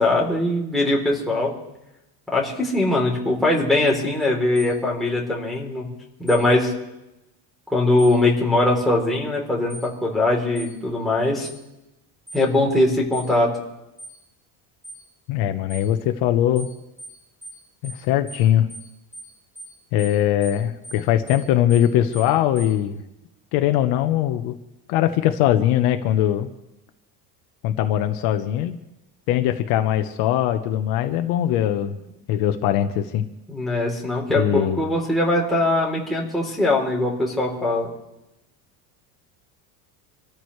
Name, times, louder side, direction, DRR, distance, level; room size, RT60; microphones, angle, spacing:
voice 1, 0.0-1.5 2.3-5.9 6.2-6.7 7.7-11.5 12.3-13.5 33.5-37.9, left 2 dB, ahead, -5 dB, 3.3 m, -21 dB
sound 1, 4.6-4.7 6.3-6.4 8.0-8.2 9.7-9.9 10.6-10.7 11.4-11.6 12.3-12.4 13.1-13.3 14.0-14.2 14.8-15.0 15.7-15.9 16.6-16.7 17.0-17.2 17.4-17.6 17.8-18.0 18.3-18.4 18.7-18.9 19.1-19.3 19.6-19.7 20.0-20.2 20.4-20.6 20.8-21.0 21.3-21.4 21.7-21.9 22.1-22.3 22.6-22.7, right 1 dB, 20° right, 7.6 m, -40 dB
voice 2, 15.3-16.7 17.8-18.7 19.9-23.0 23.5-24.6 24.9-26.5 27.6-28.7 29.3-32.0 32.3-33.3 34.3-34.8, left 11 dB, 65° left, 7 dB, 1.1 m, -21 dB
27.5 x 14.0 x 3.2 m, 0.93 s
cardioid pair, 175°, 40 cm